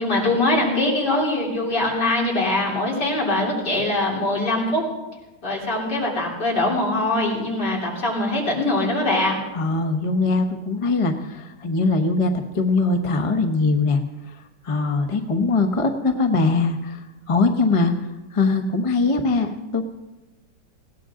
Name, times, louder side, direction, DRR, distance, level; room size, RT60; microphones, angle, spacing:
voice 1, 0.0-4.8 5.4-9.4, left 2 dB, 50° left, -3 dB, 4.0 m, -22 dB
voice 2, 9.5-14.0 14.3-14.4 14.6-19.8, left 3 dB, 30° left, 5 dB, 0.6 m, -22 dB
19.5 x 16.5 x 3.8 m, 1.1 s
omnidirectional pair, 2.3 m